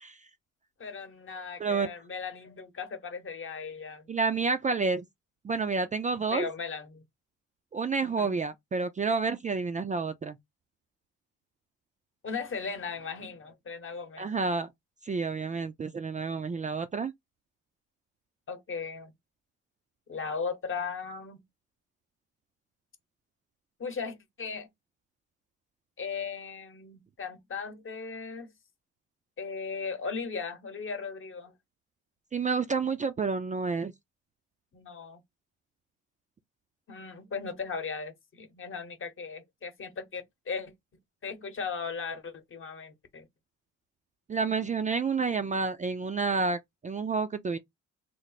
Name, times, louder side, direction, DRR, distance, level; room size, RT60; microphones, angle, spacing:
voice 1, 0.8-4.1 6.3-7.0 8.0-8.3 12.2-14.3 18.5-19.1 20.1-21.4 23.8-24.7 26.0-28.5 29.4-31.5 34.7-35.2 36.9-40.7 41.2-43.3, left 5 dB, 45° left, 1.0 m, -37 dB
voice 2, 4.1-5.0 5.4-6.5 7.7-10.4 14.2-14.7 15.0-17.1 32.3-33.9 44.3-47.6, right 4 dB, 25° right, 0.4 m, -29 dB
3.2 x 2.0 x 4.0 m
cardioid pair, 90°, 30 cm